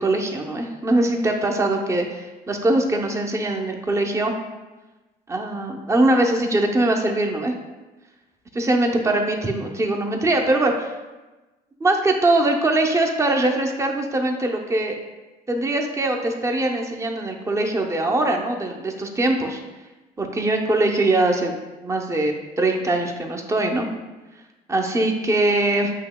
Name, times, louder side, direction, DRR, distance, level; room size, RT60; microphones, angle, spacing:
voice 1, 0.0-4.3 5.3-7.5 8.5-10.9 11.8-15.0 15.5-19.6 20.2-21.5 21.8-23.9 24.7-25.9, right 2 dB, 15° right, 2 dB, 0.6 m, -22 dB
8.2 x 2.8 x 2.2 m, 1.1 s
cardioid pair, 110°, 17 cm